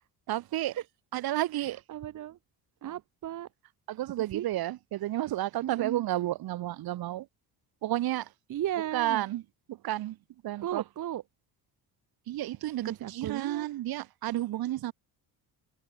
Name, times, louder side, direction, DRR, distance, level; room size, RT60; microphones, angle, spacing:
voice 1, 0.3-0.8 1.1-1.8 3.9-7.3 7.8-8.3 8.9-9.4 9.7-10.2 10.4-10.8 12.3-14.9, right 14 dB, 70° right, 1.5 m, -31 dB
voice 2, 1.6-2.4 2.8-3.5 4.3-4.5 5.6-6.0 8.5-9.2 10.6-11.2 12.8-13.7, right 12 dB, 55° right, 0.9 m, -35 dB
cardioid pair, 95°, 38 cm